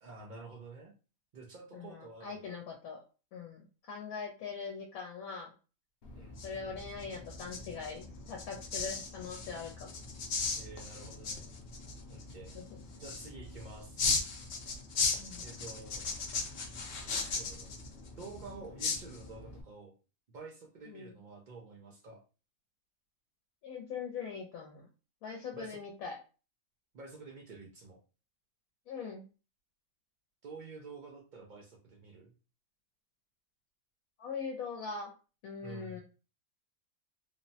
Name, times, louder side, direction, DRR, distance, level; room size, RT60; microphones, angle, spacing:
voice 1, 0.0-0.9 1.3-2.6 6.1-6.4 10.6-11.5 12.1-12.5 13.0-14.1 15.4-16.0 17.3-17.8 18.2-20.0 20.3-22.2 25.5-25.8 26.9-28.0 30.4-32.3 35.6-36.0, right 3 dB, 70° right, 1 dB, 0.4 m, -49 dB
voice 2, 1.7-3.0 3.3-5.5 6.4-9.9 12.5-12.6 15.2-15.5 20.9-21.2 23.6-24.9 25.2-26.2 28.9-29.3 34.2-35.1 35.4-36.0, left 5 dB, 90° left, 1 dB, 1.0 m, -42 dB
sound 1, 6.0-19.6, left 4 dB, 60° left, 0.7 m, -38 dB
3.2 x 2.0 x 2.6 m, 0.35 s
omnidirectional pair, 1.5 m